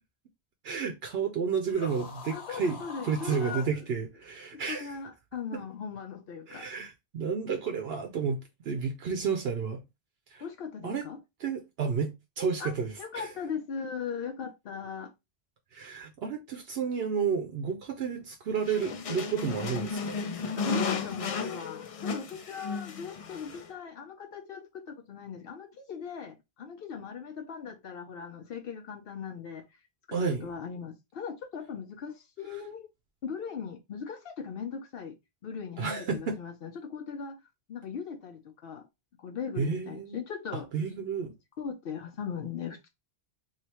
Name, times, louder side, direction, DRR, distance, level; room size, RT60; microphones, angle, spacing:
voice 1, 0.6-5.0 5.5-5.6 6.5-8.4 8.6-9.8 10.3-10.4 10.8-11.0 11.4-13.3 15.7-20.2 30.1-30.5 35.8-36.4 39.6-40.2 40.5-41.3, right 6 dB, 75° right, 0.8 m, -31 dB
sound 1, 1.6-3.7, left 4 dB, 90° left, 1.3 m, -44 dB
voice 2, 2.3-3.9 4.5-6.7 10.4-11.2 12.6-12.7 13.0-15.1 20.1-29.6 30.1-32.9 33.2-35.1 35.4-37.4 37.7-38.9 39.2-40.7 41.6-42.9, left 6 dB, 70° left, 0.8 m, -39 dB
sound 2, 18.6-23.7, left 5 dB, 50° left, 0.4 m, -34 dB
3.2 x 2.7 x 2.8 m
omnidirectional pair, 1.1 m